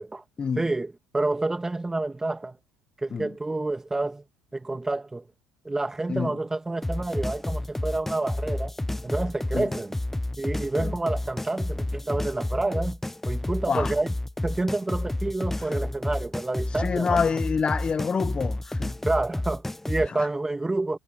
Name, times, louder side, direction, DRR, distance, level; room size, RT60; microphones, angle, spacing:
voice 1, 0.6-2.6 3.0-4.2 4.5-5.3 5.6-8.7 9.0-10.0 10.4-13.0 13.3-14.1 14.4-17.2 19.0-21.0, right 2 dB, 15° right, 2.3 m, -28 dB
sound 1, 6.8-20.1, left 1 dB, 10° left, 0.8 m, -30 dB
voice 2, 16.8-19.0, left 5 dB, 30° left, 1.3 m, -26 dB
hypercardioid pair, 70°, 3 cm